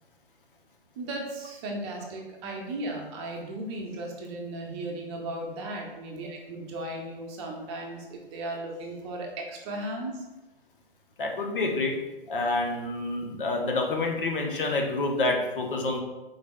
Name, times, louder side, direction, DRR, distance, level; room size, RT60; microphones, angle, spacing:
voice 1, 1.0-10.3, right 1 dB, 30° right, 0 dB, 0.7 m, -36 dB
voice 2, 11.2-12.0 12.3-16.0, left 2 dB, 60° left, 2 dB, 0.9 m, -28 dB
5.1 x 3.9 x 2.3 m, 1.1 s
figure-of-eight pair, 120°, 30 cm